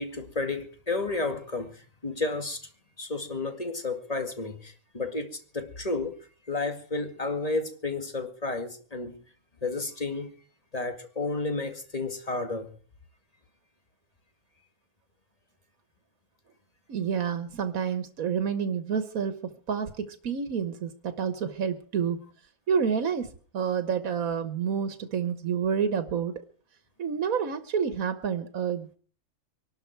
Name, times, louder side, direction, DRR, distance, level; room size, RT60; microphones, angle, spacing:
voice 1, 0.0-2.7 3.0-9.2 9.6-10.3 10.7-12.8, left 3 dB, 25° left, 2.2 m, -32 dB
voice 2, 16.9-22.2 22.7-23.3 23.5-26.4 27.0-29.0, right 7 dB, 85° right, 1.7 m, -29 dB
24.5 x 12.0 x 4.6 m
omnidirectional pair, 1.4 m